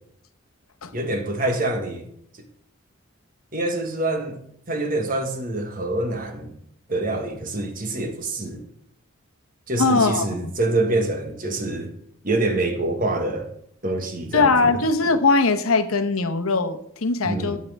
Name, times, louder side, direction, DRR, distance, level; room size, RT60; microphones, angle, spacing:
voice 1, 0.9-2.1 3.5-6.5 6.9-8.6 9.7-11.9 12.2-13.5 13.8-14.8 17.2-17.6, right 2 dB, 40° right, 1.4 m, -26 dB
voice 2, 9.8-10.5 14.3-17.6, left 3 dB, 85° left, 1.0 m, -20 dB
12.5 x 8.6 x 3.4 m
head